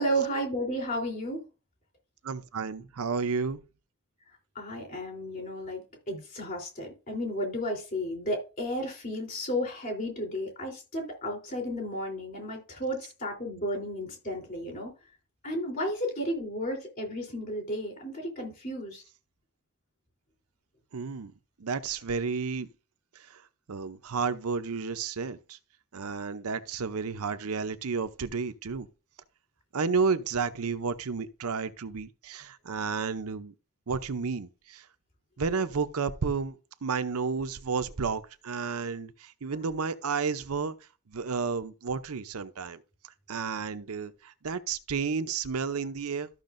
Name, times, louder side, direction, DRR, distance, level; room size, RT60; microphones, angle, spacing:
voice 1, 0.0-1.4 4.5-5.8 6.1-14.9 15.4-19.0, equal, 40° left, 3.4 m, -33 dB
voice 2, 2.2-3.6 20.9-21.3 21.6-22.7 23.3-23.4 23.7-25.6 25.9-28.9 29.7-33.5 33.9-34.8 35.4-40.7 41.1-42.8 43.3-46.3, right 5 dB, 75° right, 0.7 m, -31 dB
13.5 x 6.3 x 2.6 m
head